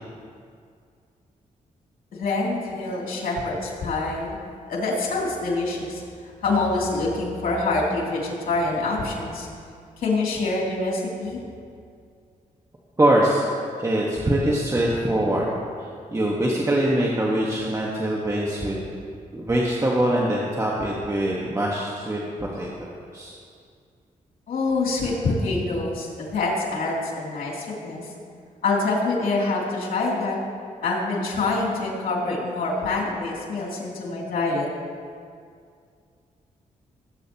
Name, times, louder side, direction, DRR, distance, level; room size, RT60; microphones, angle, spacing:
voice 1, 2.1-4.4 4.7-6.0 6.4-9.5 10.0-11.4 24.5-28.1 28.6-30.4 30.8-34.7, left 3 dB, 80° left, -4 dB, 2.9 m, -25 dB
voice 2, 13.0-15.5 15.8-18.8 19.3-22.2 22.5-22.9 23.1-23.3, right 1 dB, 20° right, -4 dB, 1.4 m, -23 dB
19.0 x 8.7 x 2.9 m, 2.3 s
cardioid pair, 85°, 14 cm